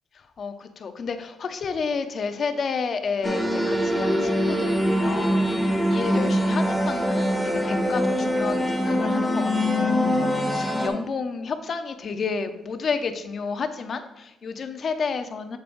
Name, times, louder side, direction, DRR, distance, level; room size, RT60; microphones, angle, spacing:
voice 1, 0.4-15.6, left 5 dB, 50° left, 8 dB, 0.7 m, -31 dB
sound 1, 3.2-10.9, equal, 5° left, 1.3 m, -23 dB
7.4 x 7.0 x 2.6 m, 0.95 s
cardioid pair, 90°, 0 cm